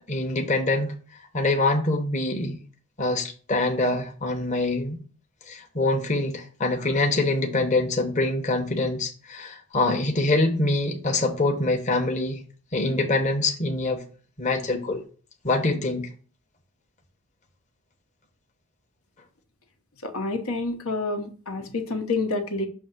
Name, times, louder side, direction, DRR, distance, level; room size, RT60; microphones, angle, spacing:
voice 1, 0.1-0.9 1.3-2.6 3.0-5.0 5.5-12.4 12.7-14.0 14.4-15.0 15.4-16.1, left 2 dB, 35° left, 1.0 m, -24 dB
voice 2, 20.0-22.7, left 3 dB, 80° left, 1.1 m, -28 dB
6.8 x 2.9 x 5.9 m
head